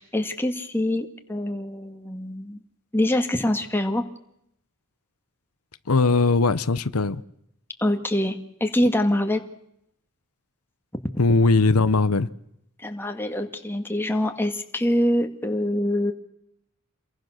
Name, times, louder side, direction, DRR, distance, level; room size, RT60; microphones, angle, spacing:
voice 1, 0.0-2.6 2.9-4.0 7.8-9.4 12.8-16.1, left 1 dB, 10° left, 1.9 m, -25 dB
voice 2, 5.9-7.2 11.2-12.3, left 3 dB, 85° left, 0.9 m, -19 dB
28.5 x 22.5 x 6.6 m
head